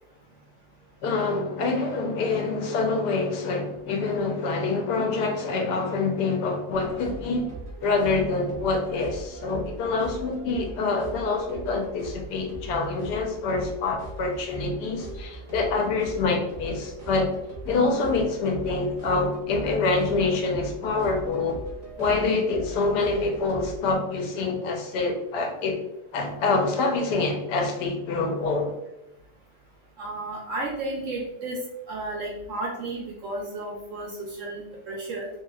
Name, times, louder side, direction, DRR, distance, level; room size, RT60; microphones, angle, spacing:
voice 1, 1.0-7.5 7.8-17.3 17.6-21.6 22.0-25.8 26.1-28.7, left 3 dB, 85° left, 2 dB, 1.2 m, -26 dB
sound 1, 6.7-24.0, right 2 dB, 35° right, 0.6 m, -40 dB
voice 2, 30.0-31.6 31.9-35.3, right 2 dB, 70° right, -1 dB, 0.8 m, -33 dB
3.1 x 2.9 x 2.3 m, 0.90 s
omnidirectional pair, 1.7 m